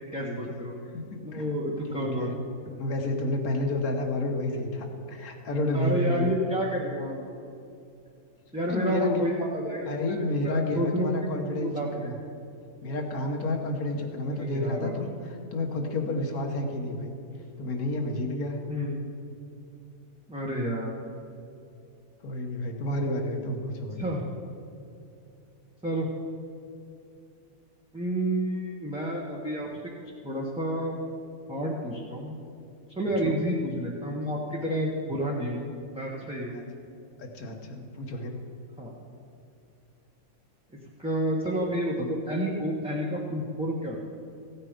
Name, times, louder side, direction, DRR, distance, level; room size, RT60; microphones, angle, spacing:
voice 1, 0.0-0.8 1.2-2.4 5.7-7.3 8.5-12.1 14.2-15.0 18.7-19.1 20.3-20.9 24.0-24.2 25.8-26.1 27.9-29.9 30.2-31.0 31.5-32.4 33.0-35.6 35.9-36.6 38.8-38.9 41.0-44.0, right 1 dB, 5° right, -5 dB, 1.0 m, -30 dB
voice 2, 0.9-1.5 1.9-2.3 2.8-6.3 8.7-9.2 9.9-11.7 12.0-12.1 12.8-17.1 17.6-18.6 22.2-24.0 33.2-33.3 36.5-36.6 37.2-38.4, left 1 dB, 80° left, 3 dB, 1.7 m, -30 dB
15.5 x 8.8 x 5.1 m, 2.5 s
omnidirectional pair, 1.6 m